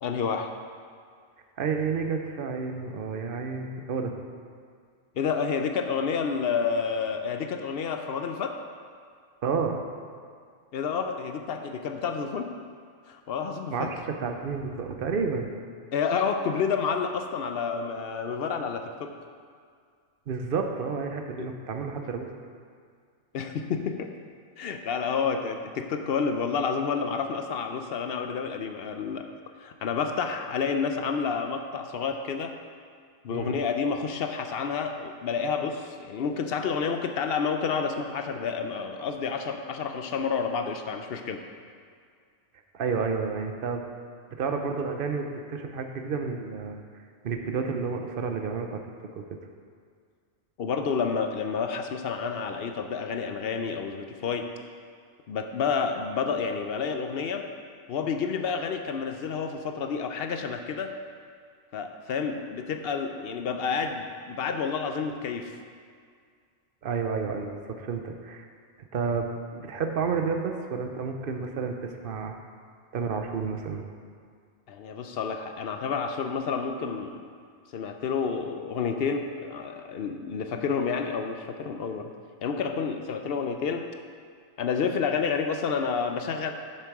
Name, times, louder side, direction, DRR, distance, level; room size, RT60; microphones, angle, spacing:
voice 1, 0.0-0.5 5.2-8.5 10.7-12.5 13.1-13.9 15.9-19.1 21.4-21.5 23.3-24.1 24.6-29.2 29.6-32.6 33.2-41.4 50.6-54.5 55.3-57.5 57.9-60.9 61.7-65.6 74.7-77.2 77.7-82.1 82.4-83.9 84.6-86.5, left 6 dB, 60° left, 6 dB, 0.7 m, -29 dB
voice 2, 1.6-4.2 9.4-9.8 13.7-15.5 20.3-22.3 33.3-33.6 42.7-43.8 44.4-46.8 47.2-48.8 49.1-49.2 66.8-68.5 68.9-72.3 72.9-73.8, right 5 dB, 50° right, 4 dB, 0.8 m, -30 dB
7.2 x 6.8 x 4.7 m, 2.1 s
omnidirectional pair, 1.3 m